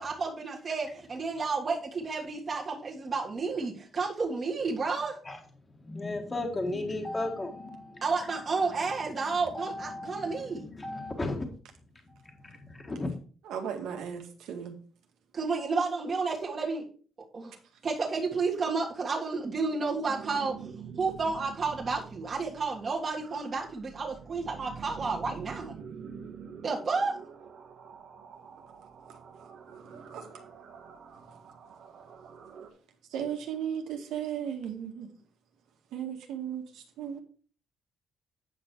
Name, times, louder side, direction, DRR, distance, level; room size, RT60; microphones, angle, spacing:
voice 1, 0.0-5.2 8.0-10.7 15.3-16.8 17.3-17.6 17.8-20.7 21.0-25.7 26.6-27.1, right 4 dB, 35° right, 1.8 m, -31 dB
voice 2, 5.8-8.0 8.3-9.0 9.3-11.5 12.1-13.1, left 2 dB, 20° left, 1.5 m, -36 dB
voice 3, 13.5-14.7 30.1-30.3 33.1-35.1 35.9-37.2, right 8 dB, 90° right, 1.9 m, -35 dB
sound 1, 19.5-32.7, right 6 dB, 70° right, 1.5 m, -47 dB
9.2 x 6.0 x 4.6 m
cardioid pair, 125°, 0 cm